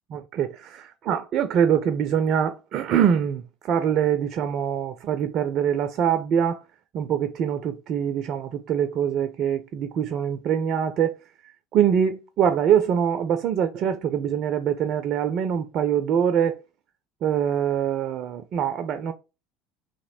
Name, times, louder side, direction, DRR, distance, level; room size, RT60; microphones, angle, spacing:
voice 1, 0.1-0.5 1.1-3.4 3.7-6.6 6.9-11.2 11.7-16.5 17.2-19.1, right 8 dB, 45° right, 0.4 m, -23 dB
3.0 x 2.9 x 4.1 m
figure-of-eight pair, 65°, 0 cm